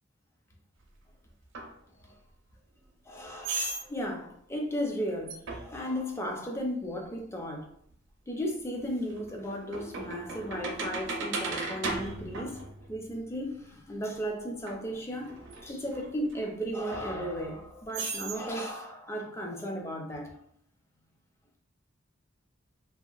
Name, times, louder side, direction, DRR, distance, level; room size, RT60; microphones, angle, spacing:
sound 1, 1.5-1.7 3.4-3.9 5.3-5.8 7.9-8.0 8.6-13.2 14.7-14.8 15.2-16.5 16.9-17.6 17.9-18.4, right 3 dB, 65° right, 0.5 m, -36 dB
voice 1, 3.0-7.7 8.3-12.6 12.9-20.3, equal, 15° left, 0.4 m, -35 dB
2.8 x 2.4 x 2.3 m
head